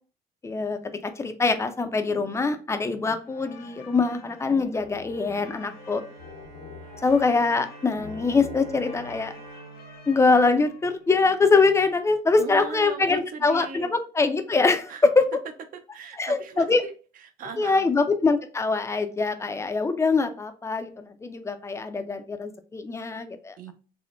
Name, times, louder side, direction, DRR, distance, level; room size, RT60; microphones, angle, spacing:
voice 1, 0.4-6.0 7.0-9.3 10.1-15.3 16.2-16.8 17.6-23.6, left 4 dB, 15° left, 9 dB, 0.3 m, -23 dB
sound 1, 3.2-11.1, left 5 dB, 65° left, 0.6 m, -46 dB
Bowed string instrument, 5.3-11.5, right 3 dB, 75° right, 1.5 m, -47 dB
voice 2, 12.4-13.9 14.9-15.1 15.9-17.9 23.6-23.7, right 6 dB, 55° right, 7 dB, 0.5 m, -39 dB
3.6 x 2.0 x 2.3 m, 0.38 s
cardioid pair, 110°, 17 cm